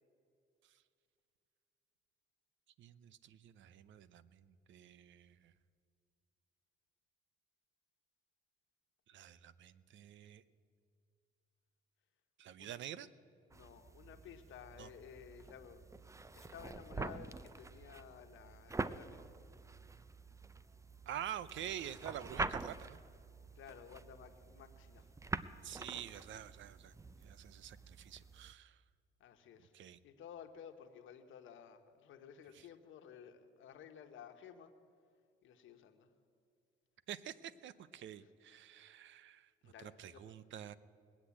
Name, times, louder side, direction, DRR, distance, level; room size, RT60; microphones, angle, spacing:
voice 1, 2.8-5.5 9.1-10.4 12.4-13.1 14.8-14.9 21.1-23.0 25.6-28.8 29.7-30.0 32.5-32.7 37.1-40.7, right 10 dB, 70° right, 17 dB, 0.7 m, -48 dB
voice 2, 13.5-15.8 16.3-19.2 23.5-25.1 29.2-29.7 30.0-34.7 35.4-36.1 38.2-38.3 39.6-40.3, left 8 dB, 80° left, 7 dB, 1.3 m, -55 dB
sound 1, 13.5-28.5, right 3 dB, 15° right, 0.5 m, -46 dB
20.5 x 8.3 x 8.5 m, 2.3 s
cardioid pair, 90°, 20 cm